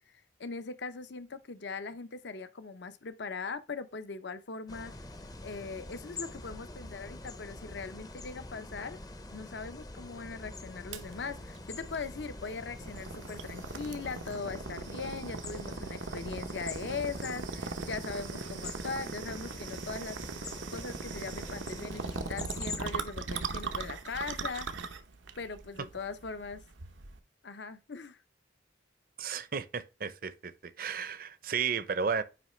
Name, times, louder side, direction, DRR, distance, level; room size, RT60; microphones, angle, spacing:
voice 1, 0.0-4.9 5.4-9.0 9.3-20.2 20.7-24.9 25.4-26.6 27.4-28.2, left 4 dB, 65° left, 0.7 m, -40 dB
sound 1, 4.7-22.8, left 2 dB, 20° left, 0.6 m, -45 dB
sound 2, 10.9-27.2, right 4 dB, 85° right, 0.8 m, -40 dB
voice 2, 29.2-32.2, right 6 dB, 50° right, 0.6 m, -33 dB
9.4 x 3.2 x 3.1 m
head